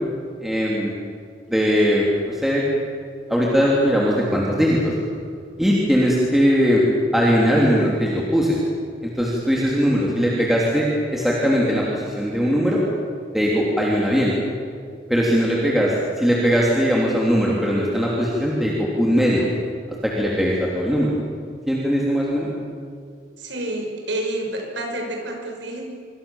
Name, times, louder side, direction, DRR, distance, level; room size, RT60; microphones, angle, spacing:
voice 1, 0.4-0.9 1.5-2.6 3.3-4.9 5.6-6.8 7.1-8.6 9.0-12.8 13.3-14.3 15.1-19.5 20.0-21.1 21.7-22.5, equal, ahead, -4 dB, 3.2 m, -20 dB
voice 2, 23.4-25.8, right 1 dB, 80° right, 2 dB, 6.0 m, -29 dB
26.5 x 24.5 x 7.3 m, 2.2 s
head